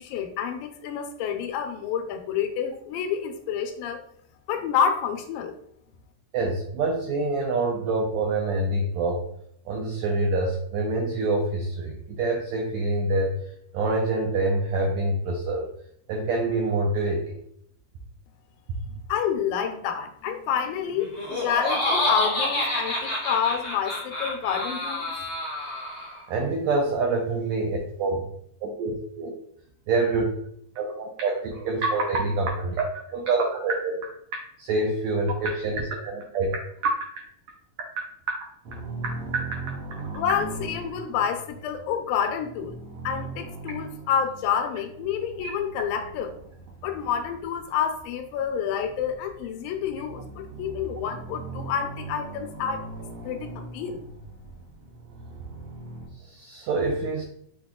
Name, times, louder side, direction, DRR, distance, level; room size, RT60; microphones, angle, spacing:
voice 1, 0.0-4.0 4.5-5.5 18.9-25.1 40.2-42.8 43.0-46.3 46.8-52.8 53.3-53.5 53.7-54.0, left 7 dB, 85° left, 6 dB, 2.3 m, -28 dB
voice 2, 6.3-9.2 9.7-13.3 13.7-15.7 16.1-17.4 26.3-28.3 28.6-29.3 29.9-30.2 30.7-34.0 34.6-36.6 36.8-36.9 45.4-45.5 56.2-57.2, right 2 dB, 85° right, 1 dB, 1.5 m, -26 dB
Laughter, 21.0-26.2, left 1 dB, 45° left, 0.8 m, -28 dB
sound 1, 38.6-56.1, right 3 dB, 65° right, 1.5 m, -40 dB
6.1 x 2.3 x 3.6 m, 0.68 s
omnidirectional pair, 3.9 m